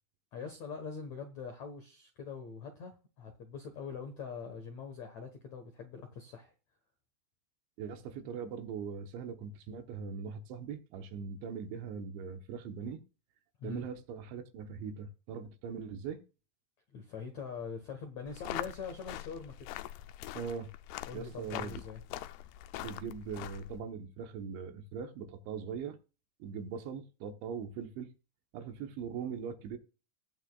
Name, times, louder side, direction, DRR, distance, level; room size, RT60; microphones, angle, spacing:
voice 1, 0.3-6.5 13.6-13.9 16.9-19.7 21.1-22.0, left 5 dB, 70° left, 1.7 m, -43 dB
voice 2, 7.8-13.0 13.6-16.2 20.3-20.7 21.1-21.8 22.8-26.0 26.4-28.1 28.5-29.8, right 6 dB, 80° right, 3.4 m, -41 dB
sound 1, 18.3-23.8, left 14 dB, 85° left, 2.3 m, -43 dB
18.5 x 8.9 x 2.4 m
omnidirectional pair, 5.3 m